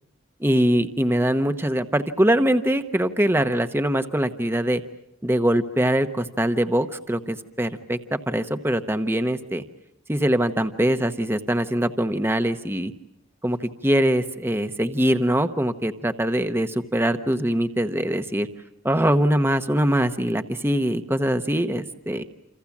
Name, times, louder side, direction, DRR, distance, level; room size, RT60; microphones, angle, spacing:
voice 1, 0.4-4.8 5.2-9.6 10.1-12.9 13.4-18.5 18.8-22.3, right 1 dB, 10° right, 8 dB, 1.0 m, -23 dB
28.5 x 27.5 x 7.3 m, 0.80 s
head